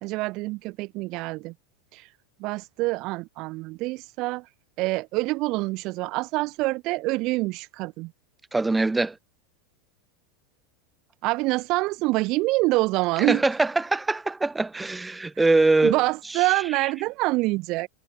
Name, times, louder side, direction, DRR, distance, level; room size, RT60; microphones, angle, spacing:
voice 1, 0.0-1.5 1.9-2.0 2.4-4.4 4.8-8.1 11.2-13.4 15.8-17.9, right 22 dB, 50° right, 2.3 m, -26 dB
voice 2, 8.5-9.1 13.2-16.0 16.3-16.4, right 3 dB, 10° right, 4.9 m, -22 dB
hypercardioid pair, 95°, 0 cm